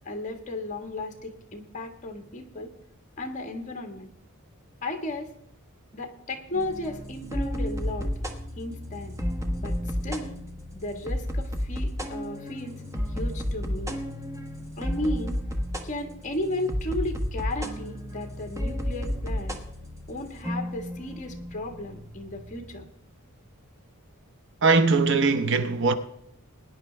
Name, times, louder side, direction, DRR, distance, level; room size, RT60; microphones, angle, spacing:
voice 1, 0.0-2.7 3.2-4.1 4.8-5.3 5.9-8.1 8.5-9.2 9.6-9.7 10.0-10.4 10.7-12.8 13.1-14.0 14.8-15.4 15.8-19.6 20.1-22.8, left 1 dB, 35° left, 1.5 m, -34 dB
sound 1, 6.5-22.8, equal, 15° right, 1.1 m, -32 dB
voice 2, 24.6-25.9, right 4 dB, 55° right, 0.8 m, -21 dB
19.5 x 10.0 x 3.4 m
head